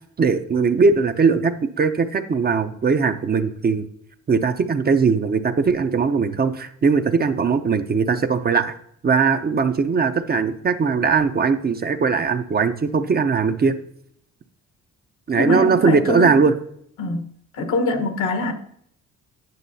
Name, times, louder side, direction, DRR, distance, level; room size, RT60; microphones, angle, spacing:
voice 1, 0.2-3.9 4.3-8.8 9.0-13.8 15.3-16.5, right 5 dB, 30° right, 0.6 m, -20 dB
voice 2, 15.4-16.5 17.0-17.3 17.5-18.5, left 2 dB, 80° left, 1.2 m, -23 dB
9.2 x 6.1 x 2.7 m
cardioid pair, 90°, 30 cm